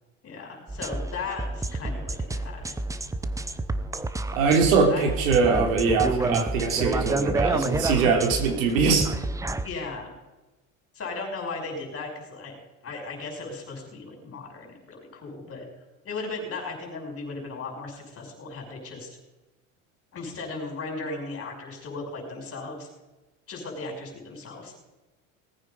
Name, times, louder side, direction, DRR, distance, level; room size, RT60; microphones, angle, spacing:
voice 1, 0.2-2.8 4.8-5.1 6.2-6.3 9.6-10.1 10.9-12.5 12.8-15.7 16.0-19.2 20.1-22.9 23.5-24.7, left 3 dB, 35° left, 1 dB, 5.9 m, -36 dB
sound 1, 0.7-9.7, right 2 dB, 10° right, 0.8 m, -29 dB
voice 2, 4.3-9.1, right 5 dB, 85° right, 4 dB, 3.2 m, -22 dB
19.0 x 9.2 x 5.3 m, 1.1 s
supercardioid pair, 105°, 40 cm